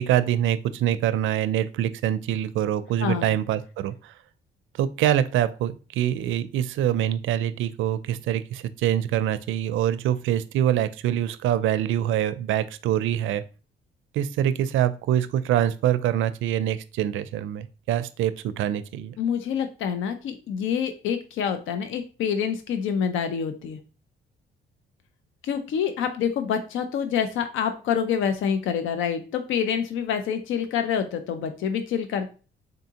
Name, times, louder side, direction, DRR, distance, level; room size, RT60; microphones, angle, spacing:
voice 1, 0.0-4.1 4.8-13.4 14.1-19.2, right 11 dB, 80° right, 13 dB, 0.4 m, -25 dB
voice 2, 3.0-3.3 19.2-23.8 25.4-32.3, left 7 dB, 80° left, 8 dB, 0.5 m, -27 dB
3.7 x 3.5 x 2.8 m, 0.35 s
cardioid pair, 90°, 20 cm